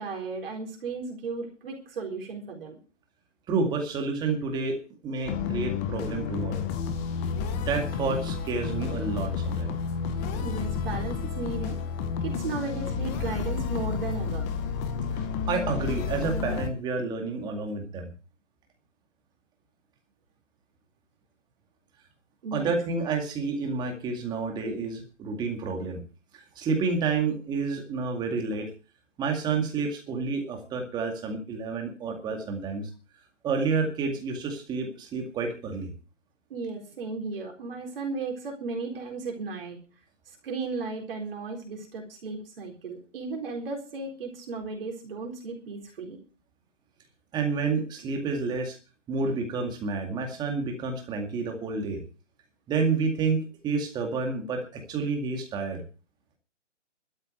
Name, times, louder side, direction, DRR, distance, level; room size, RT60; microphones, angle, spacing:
voice 1, 0.0-2.8 10.4-11.8 12.2-14.5 22.4-22.8 36.5-39.8 40.3-46.2, right 4 dB, 50° right, 1 dB, 4.0 m, -35 dB
voice 2, 3.5-4.7 5.0-6.7 7.6-9.7 15.5-18.1 22.5-26.0 26.3-28.7 29.2-32.8 33.4-35.9 47.3-48.8 49.1-52.0 52.7-55.8, right 4 dB, 10° right, 3 dB, 2.1 m, -29 dB
sound 1, 5.2-16.7, left 6 dB, 15° left, 0.8 m, -31 dB
13.0 x 6.7 x 9.4 m, 0.36 s
hypercardioid pair, 150°, 37 cm